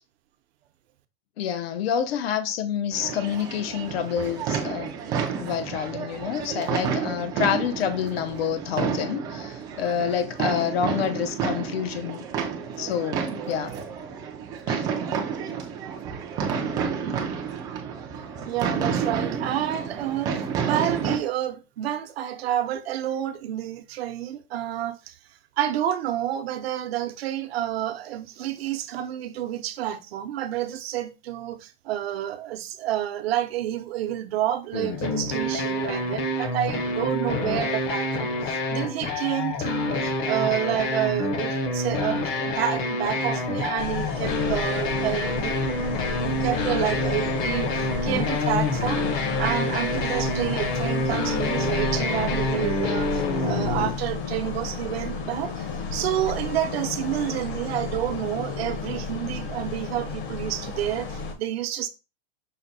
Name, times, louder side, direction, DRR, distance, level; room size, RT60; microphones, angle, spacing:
voice 1, 1.4-12.2 12.8-13.7 14.7-14.9, left 8 dB, 75° left, 0.7 m, -28 dB
sound 1, 2.9-21.2, right 6 dB, 15° right, 0.3 m, -30 dB
voice 2, 18.5-25.2 25.6-61.9, right 12 dB, 75° right, 0.7 m, -29 dB
sound 2, 34.7-53.9, left 2 dB, 40° left, 0.8 m, -27 dB
sound 3, 43.8-61.3, left 4 dB, 55° left, 1.2 m, -32 dB
5.7 x 2.2 x 3.9 m
supercardioid pair, 160°, 31 cm